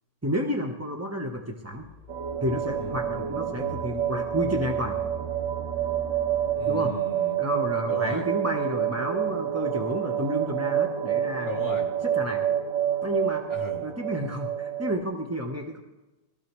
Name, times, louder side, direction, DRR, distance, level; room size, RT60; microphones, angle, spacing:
voice 1, 0.2-1.9 2.4-5.0 6.7-6.9 7.4-11.6 12.0-12.5 13.0-13.4 13.8-15.8, equal, 20° right, 2 dB, 0.4 m, -30 dB
sound 1, 1.8-6.9, right 2 dB, 25° left, 1.7 m, -40 dB
sound 2, 2.1-15.0, right 10 dB, 80° right, 1.6 m, -28 dB
voice 2, 6.5-7.4 7.9-8.2 11.4-11.9 13.5-13.8, left 2 dB, 10° left, -2 dB, 2.3 m, -36 dB
22.0 x 15.0 x 3.1 m, 1.1 s
omnidirectional pair, 1.9 m